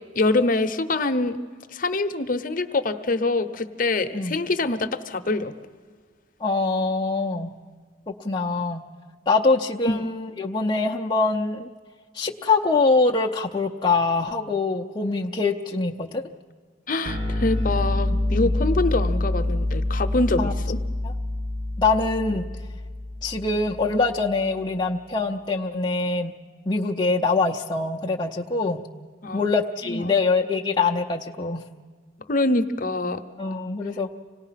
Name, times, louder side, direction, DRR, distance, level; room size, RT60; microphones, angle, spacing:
voice 1, 0.1-1.4 1.7-5.5 9.9-10.0 16.9-20.8 29.2-29.5 29.8-30.2 32.3-33.2, left 2 dB, 45° left, 8 dB, 0.9 m, -25 dB
voice 2, 6.4-7.5 8.1-8.8 9.3-11.7 12.1-16.2 20.4-20.5 21.0-21.1 21.8-22.5 23.2-26.3 26.7-28.9 29.3-31.6 33.4-34.2, left 3 dB, 25° left, 0 dB, 0.6 m, -24 dB
sound 1, 17.0-23.9, left 1 dB, 45° right, 6.5 m, -26 dB
26.0 x 18.5 x 5.8 m, 1.5 s
head